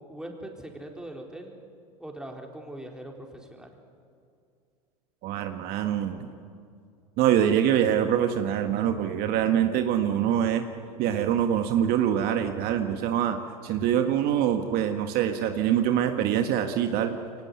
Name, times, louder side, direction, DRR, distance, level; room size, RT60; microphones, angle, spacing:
voice 1, 0.1-1.6 2.0-3.7, right 1 dB, 5° right, 1 dB, 4.2 m, -41 dB
voice 2, 5.2-6.3 7.2-10.6 11.0-13.4 13.6-17.2, right 10 dB, 55° right, 6 dB, 1.7 m, -24 dB
24.0 x 18.5 x 9.7 m, 2.3 s
hypercardioid pair, 85°, 19 cm